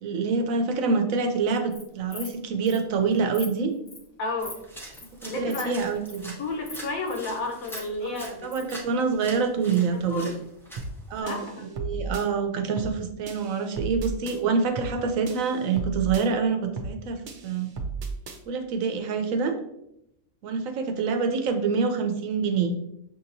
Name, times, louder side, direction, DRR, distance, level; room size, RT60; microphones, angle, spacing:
voice 1, 0.0-3.7 5.2-6.3 8.1-10.3 11.1-17.2 17.4-17.7 18.5-19.5 20.4-22.7, right 5 dB, 75° right, 5 dB, 1.0 m, -26 dB
Insect, 1.5-1.8 2.1-2.3 2.7-2.8 3.1-3.5 3.9-4.1 4.4-4.6 4.9-5.1 5.5-5.6 5.9-6.2 6.6-7.2 7.5-8.8, left 3 dB, 50° left, 1.0 m, -41 dB
voice 2, 4.2-4.6 5.3-5.8 6.4-8.5 9.9-10.4 11.2-11.6, left 2 dB, 75° left, 2 dB, 1.3 m, -32 dB
sound 1, 4.4-11.2, right 1 dB, 5° left, 0.3 m, -45 dB
sound 2, 10.8-11.0 11.3-12.3 12.8-13.0 13.3-14.4 14.8-15.0 15.3-16.3 16.8-17.0 17.3-18.4, right 4 dB, 55° right, 0.5 m, -34 dB
6.2 x 2.8 x 2.6 m, 0.80 s
omnidirectional pair, 1.5 m